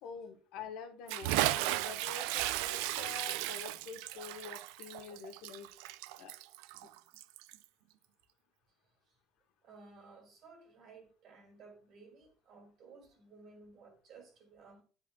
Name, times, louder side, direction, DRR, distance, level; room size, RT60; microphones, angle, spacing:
voice 1, 0.0-5.7 6.2-6.3 6.8-6.9, left 6 dB, 75° left, 1.2 m, -47 dB
Bathtub (filling or washing) / Splash splatter, 1.1-7.6, right 16 dB, 85° right, 0.3 m, -35 dB
voice 2, 9.6-14.8, right 4 dB, 55° right, 2.5 m, -56 dB
10.0 x 4.9 x 2.3 m
supercardioid pair, 100°, 0 cm